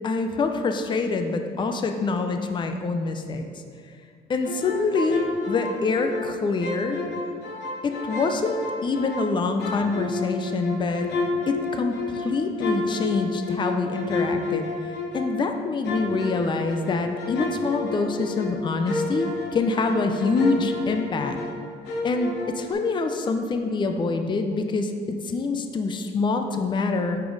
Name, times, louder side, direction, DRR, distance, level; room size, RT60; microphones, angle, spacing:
voice 1, 0.0-3.5 4.3-7.0 7.8-11.1 11.5-21.4 22.0-27.2, left 3 dB, 25° left, 6 dB, 0.5 m, -25 dB
sound 1, 4.4-6.3 6.6-9.3 9.6-15.4 15.8-21.6 21.8-22.7, left 3 dB, 90° left, 1.2 m, -31 dB
8.4 x 5.1 x 4.0 m, 2.1 s
cardioid pair, 110°, 17 cm